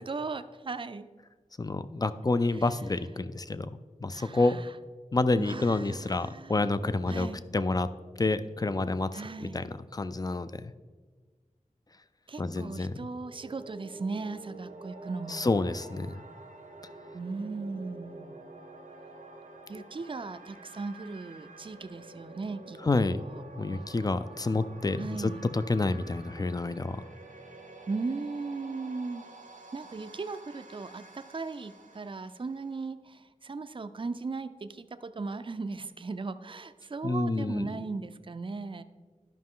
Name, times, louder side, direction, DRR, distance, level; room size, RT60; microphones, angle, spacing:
voice 1, 0.1-1.1 2.5-2.7 4.1-4.7 5.4-6.7 7.1-7.4 9.1-9.7 12.3-15.6 17.1-18.4 19.7-23.4 25.0-25.4 27.9-29.2 29.7-38.8, right 3 dB, 40° right, 11 dB, 0.4 m, -37 dB
voice 2, 1.6-3.7 4.0-4.6 5.1-7.3 7.5-7.9 8.2-10.7 12.4-13.1 15.3-16.2 19.7-19.8 22.8-23.2 23.6-27.0 37.0-37.9, left 2 dB, 30° left, 13 dB, 0.4 m, -29 dB
sound 1, 13.0-32.9, right 2 dB, 90° right, 0.9 m, -49 dB
12.0 x 5.3 x 3.7 m, 1.4 s
wide cardioid pair, 65°, 13 cm